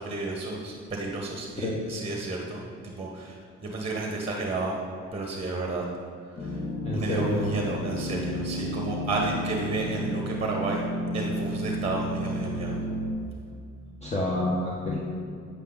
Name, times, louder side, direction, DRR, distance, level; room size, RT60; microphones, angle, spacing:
voice 1, 0.0-4.8 5.1-5.8 6.4-6.5 6.9-10.8 11.1-12.8, right 3 dB, 20° right, -1 dB, 1.3 m, -32 dB
sound 1, 6.4-13.1, equal, 65° left, 1.9 m, -32 dB
voice 2, 6.8-7.5 14.0-15.0, left 1 dB, 20° left, -5 dB, 1.4 m, -28 dB
8.6 x 8.1 x 4.0 m, 2.3 s
cardioid pair, 90°, 30 cm